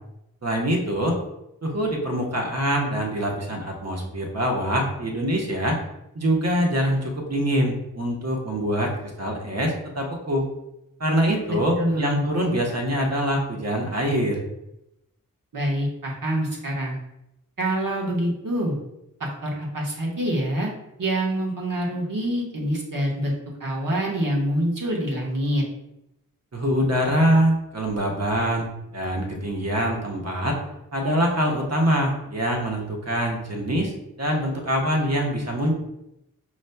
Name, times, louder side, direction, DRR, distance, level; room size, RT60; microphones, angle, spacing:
voice 1, 0.4-1.1 1.6-5.8 6.1-10.4 11.0-14.4 26.5-30.6 30.9-33.9 34.2-35.7, equal, 50° right, 0 dB, 1.1 m, -24 dB
voice 2, 11.5-12.2 15.5-17.0 17.6-18.8 19.2-20.7 21.0-23.3 23.6-25.6, right 1 dB, 70° right, -3 dB, 1.3 m, -26 dB
5.3 x 3.0 x 2.2 m, 0.86 s
cardioid pair, 40°, 34 cm